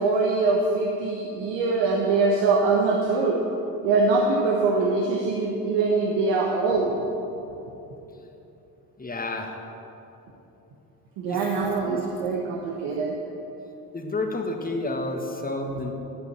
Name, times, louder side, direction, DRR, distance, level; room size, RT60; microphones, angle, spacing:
voice 1, 0.0-3.4 3.8-6.9 11.2-13.1, right 3 dB, 65° right, -1 dB, 1.4 m, -23 dB
voice 2, 9.0-9.5 11.2-11.4 11.9-12.0 13.9-15.9, left 2 dB, 20° left, 2 dB, 1.7 m, -30 dB
11.0 x 8.0 x 7.4 m, 3.0 s
hypercardioid pair, 50°, 48 cm